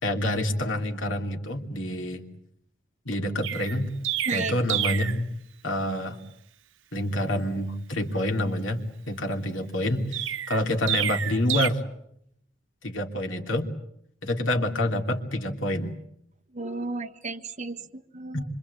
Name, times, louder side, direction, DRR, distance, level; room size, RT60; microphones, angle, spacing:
voice 1, 0.0-2.3 3.0-3.9 4.3-5.3 5.6-6.2 6.9-11.8 12.8-13.7 14.2-16.0 18.3-18.4, left 1 dB, 80° left, 5 dB, 3.0 m, -27 dB
Chirp tweet, 3.4-5.2 10.1-11.7, right 11 dB, 85° right, 1.0 m, -29 dB
voice 2, 16.5-18.4, right 3 dB, 40° right, 5 dB, 1.4 m, -33 dB
26.0 x 25.0 x 8.3 m, 0.74 s
head